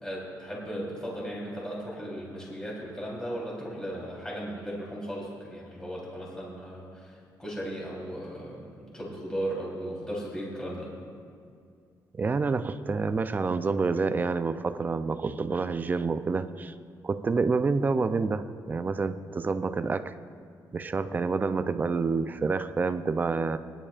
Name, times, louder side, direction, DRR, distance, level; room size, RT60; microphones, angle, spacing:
voice 1, 0.0-10.9, equal, 10° left, -5 dB, 3.6 m, -36 dB
voice 2, 12.1-16.7 17.0-20.1 20.7-23.6, right 4 dB, 25° right, 11 dB, 0.4 m, -28 dB
22.5 x 11.0 x 2.5 m, 2.2 s
cardioid pair, 140°, 7 cm